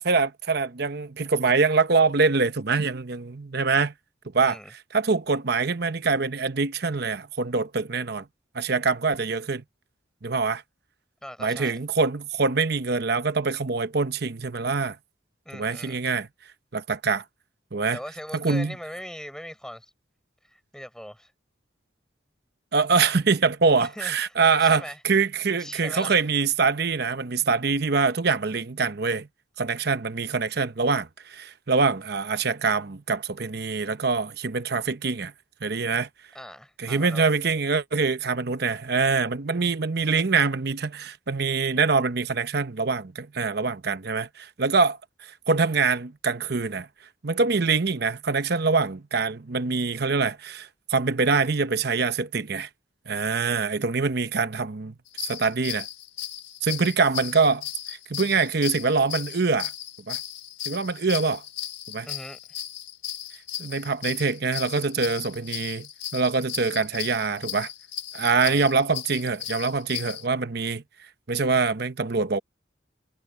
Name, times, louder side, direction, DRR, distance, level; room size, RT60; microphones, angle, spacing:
voice 1, 0.0-3.9 4.3-4.6 4.9-8.2 8.5-9.6 10.2-10.6 11.4-15.0 15.5-16.3 16.7-17.2 17.7-18.0 18.3-18.7 22.7-29.3 29.6-35.3 35.6-36.1 36.8-45.0 45.5-46.9 47.2-52.7 53.1-54.9 55.2-55.9 56.6-57.6 58.1-59.7 60.1-60.2 60.7-61.4 61.9-62.1 63.6-67.7 68.1-70.8 71.3-72.4, right 4 dB, 55° right, 0.9 m, -24 dB
voice 2, 4.4-4.7 11.2-11.8 15.4-16.0 17.9-19.9 20.4-21.3 23.8-24.3 24.6-25.0 25.6-26.2 36.3-37.3 62.1-62.6 68.3-68.6, equal, 5° left, 6.3 m, -40 dB
sound 1, 55.1-70.2, left 11 dB, 80° left, 4.7 m, -36 dB
head